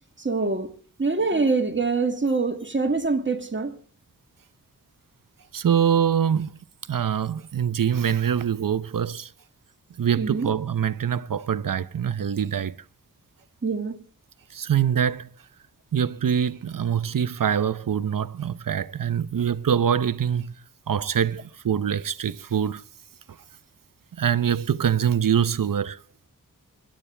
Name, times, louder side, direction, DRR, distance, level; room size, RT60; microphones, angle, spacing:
voice 1, 0.2-0.7 1.0-3.7 10.2-10.5 13.6-14.0, right 3 dB, 35° right, 2.2 m, -24 dB
voice 2, 5.5-6.5 6.9-9.3 10.0-12.8 14.5-15.3 15.9-20.5 20.9-22.8 24.2-26.0, right 8 dB, 85° right, 0.8 m, -24 dB
25.5 x 11.5 x 3.4 m
wide cardioid pair, 100°, 32 cm